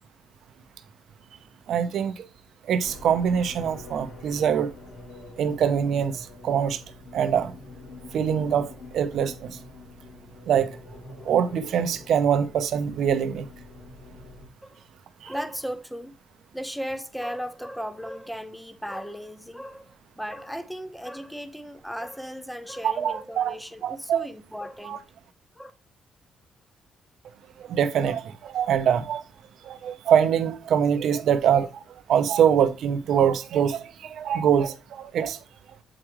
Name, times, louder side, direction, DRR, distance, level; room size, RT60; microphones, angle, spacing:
voice 1, 1.7-2.2 2.7-4.7 5.4-6.8 7.1-7.5 8.1-8.7 8.9-9.6 10.5-10.7 11.3-13.5 15.2-15.3 22.8-23.5 23.8-24.3 24.8-25.0 27.7-29.2 29.7-31.7 32.1-35.4, right 8 dB, 70° right, 0.7 m, -23 dB
sound 1, 2.8-14.5, left 2 dB, 60° left, 3.4 m, -45 dB
voice 2, 15.2-16.2 16.5-25.0 25.5-25.7, equal, ahead, 0.7 m, -36 dB
7.5 x 4.9 x 3.0 m
cardioid pair, 90°, 0 cm